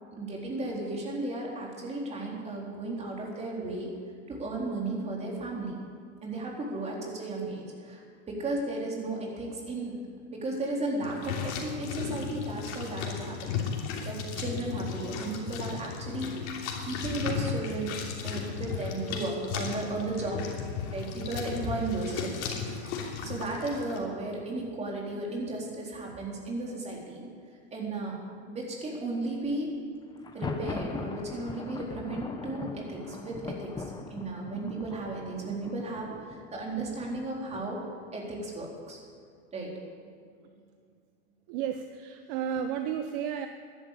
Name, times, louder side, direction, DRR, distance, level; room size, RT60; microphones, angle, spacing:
voice 1, 0.1-3.9 4.3-5.8 6.2-8.0 8.3-16.3 16.8-18.0 18.2-20.4 20.9-22.5 22.8-27.2 27.7-28.2 28.5-29.7 30.3-37.8 38.1-39.0 39.5-40.5, right 2 dB, 20° right, -2 dB, 3.9 m, -35 dB
sound 1, 11.0-24.0, left 6 dB, 55° left, 3.0 m, -35 dB
Thunder, 30.2-37.9, left 4 dB, 10° left, 0.9 m, -40 dB
voice 2, 41.5-43.5, right 8 dB, 50° right, 7 dB, 0.9 m, -32 dB
13.5 x 11.0 x 8.3 m, 2.2 s
supercardioid pair, 130°, 35 cm